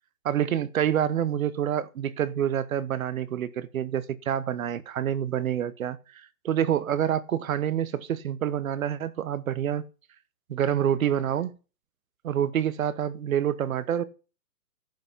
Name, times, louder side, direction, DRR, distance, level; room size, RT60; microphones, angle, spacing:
voice 1, 0.2-9.8 10.5-11.5 12.2-14.0, right 10 dB, 55° right, 1.0 m, -27 dB
10.5 x 5.8 x 7.1 m
hypercardioid pair, 170°, 48 cm